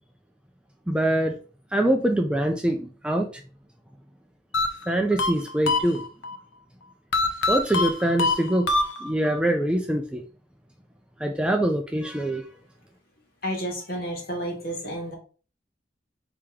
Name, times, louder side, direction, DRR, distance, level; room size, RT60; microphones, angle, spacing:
voice 1, 0.9-1.3 1.7-3.4 4.9-6.0 7.5-8.7 9.0-10.2 11.2-12.4, right 1 dB, 5° right, 3 dB, 0.4 m, -24 dB
sound 1, 4.5-6.4 7.1-9.4, left 3 dB, 85° left, 0.7 m, -25 dB
voice 2, 13.4-15.1, equal, 55° left, 0 dB, 1.6 m, -31 dB
3.7 x 2.9 x 4.7 m, 0.37 s
head